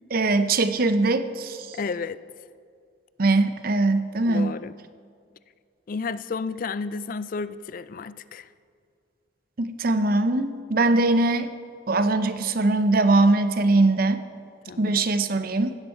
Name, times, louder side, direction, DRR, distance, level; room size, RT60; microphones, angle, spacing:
voice 1, 0.1-1.7 3.2-4.5 9.6-11.5 11.9-14.2 14.8-15.7, right 2 dB, 50° right, 10 dB, 0.7 m, -21 dB
voice 2, 1.7-2.2 4.2-4.7 5.9-8.5 14.7-15.0, left 4 dB, 45° left, 16 dB, 0.4 m, -32 dB
15.5 x 11.5 x 4.4 m, 2.2 s
head